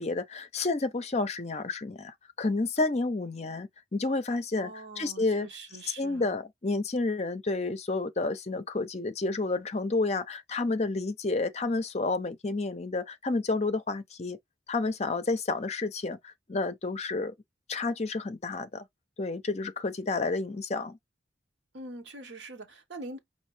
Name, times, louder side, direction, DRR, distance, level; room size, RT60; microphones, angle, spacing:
voice 1, 0.0-4.7 5.0-5.5 6.0-14.4 14.7-17.3 17.7-18.9 19.2-21.0, left 3 dB, 35° left, 0.6 m, -30 dB
voice 2, 4.6-6.3 21.7-23.2, right 2 dB, 70° right, 1.1 m, -43 dB
5.4 x 2.6 x 3.2 m
head